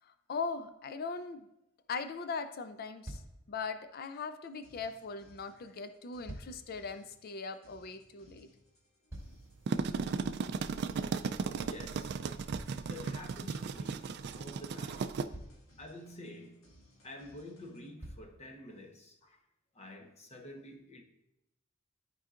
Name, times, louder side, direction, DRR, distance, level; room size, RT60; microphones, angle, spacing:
voice 1, 0.1-1.5 1.9-3.2 3.5-8.5, left 4 dB, 50° left, 0.4 m, -40 dB
sound 1, 0.7-0.8 2.2-2.3 2.6-2.8 3.0-3.5 5.9-6.7 8.6-9.7 12.5-13.5 14.7-14.8 15.3-15.8 17.2-17.3 18.0-18.4 19.2-19.3, right 1 dB, 15° right, 2.6 m, -48 dB
sound 2, 4.4-17.9, equal, 90° left, 1.6 m, -63 dB
sound 3, 9.4-15.3, right 5 dB, 55° right, 0.3 m, -35 dB
voice 2, 11.6-12.2 12.8-15.1 15.8-16.7 17.0-19.4 19.7-21.0, left 1 dB, 30° left, 1.0 m, -49 dB
13.0 x 4.6 x 2.5 m
head